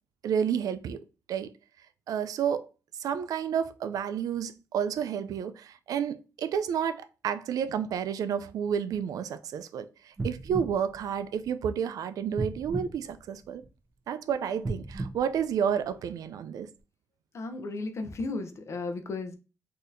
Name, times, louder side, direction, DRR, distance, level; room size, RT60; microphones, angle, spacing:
voice 1, 0.2-1.0 1.3-1.5 2.1-2.6 3.0-13.6 14.1-16.7, right 8 dB, 90° right, 0.3 m, -30 dB
sound 1, 10.1-11.8 12.3-13.9 14.5-16.2 16.8-16.9, right 2 dB, 30° right, 0.9 m, -37 dB
voice 2, 17.3-19.4, left 3 dB, 50° left, 0.6 m, -35 dB
4.0 x 2.8 x 2.6 m
wide cardioid pair, 125°, 6 cm